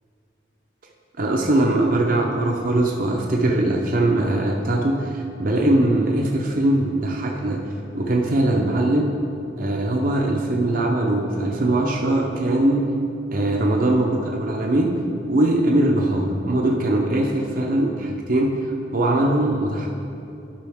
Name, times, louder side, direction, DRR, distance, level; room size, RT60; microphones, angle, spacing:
voice 1, 1.2-7.6 7.9-9.1 9.6-12.9 13.3-15.0 15.3-19.9, right 1 dB, 45° right, -1 dB, 0.7 m, -21 dB
11.5 x 5.4 x 3.5 m, 2.7 s
head